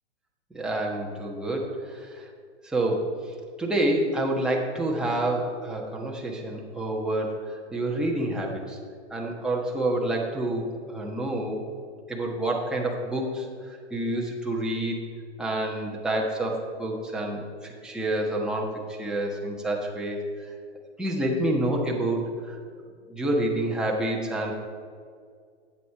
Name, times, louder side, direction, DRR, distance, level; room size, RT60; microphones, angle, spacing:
voice 1, 0.5-2.2 2.6-3.1 3.6-7.3 7.7-8.8 9.1-11.6 12.1-15.0 15.4-20.5 21.0-22.5 23.1-24.5, right 1 dB, ahead, -2 dB, 1.3 m, -28 dB
11.0 x 8.5 x 4.8 m, 2.1 s
hypercardioid pair, 135°, 35 cm